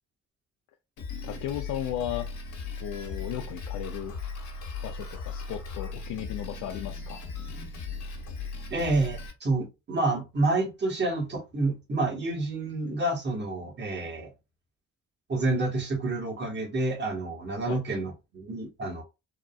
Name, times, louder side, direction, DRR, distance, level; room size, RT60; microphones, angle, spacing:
Drum kit, 1.0-9.3, left 4 dB, 65° left, 1.1 m, -37 dB
voice 1, 1.2-2.3 2.8-4.1 4.8-7.2 17.7-17.8, left 11 dB, 85° left, 0.5 m, -35 dB
voice 2, 8.7-14.3 15.3-19.0, right 2 dB, 35° right, 1.4 m, -29 dB
3.7 x 2.1 x 2.3 m
cardioid pair, 90°, 30 cm